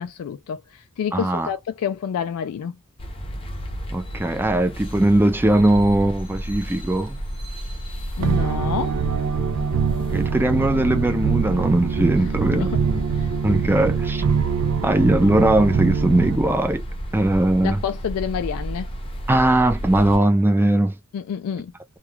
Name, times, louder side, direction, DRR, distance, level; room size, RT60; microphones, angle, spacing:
voice 1, 0.0-2.8 8.2-9.0 12.5-12.8 13.2-13.3 17.6-18.9 21.1-21.7, left 7 dB, 75° left, 0.3 m, -28 dB
voice 2, 1.1-1.5 3.9-7.2 10.1-13.0 13.4-14.2 14.8-16.8 17.1-17.8 19.3-21.0, right 1 dB, 10° right, 0.4 m, -19 dB
sound 1, 3.0-20.2, equal, 25° left, 0.6 m, -32 dB
sound 2, 8.2-16.4, right 6 dB, 85° right, 0.4 m, -24 dB
2.3 x 2.2 x 2.9 m
head